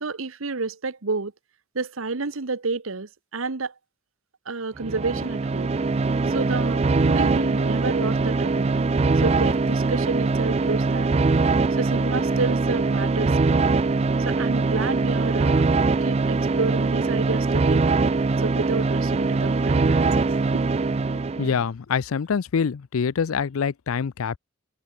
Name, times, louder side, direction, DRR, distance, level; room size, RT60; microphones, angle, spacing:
voice 1, 0.0-1.3 1.7-3.7 4.5-5.7 6.3-8.8 9.2-11.1 11.8-13.8 14.2-15.6 16.0-18.0 18.4-20.3 20.5-20.7, right 3 dB, 75° right, 1.1 m, -30 dB
sound 1, 4.8-21.6, right 3 dB, 30° right, 0.4 m, -22 dB
voice 2, 21.1-24.4, left 6 dB, 85° left, 0.5 m, -25 dB
head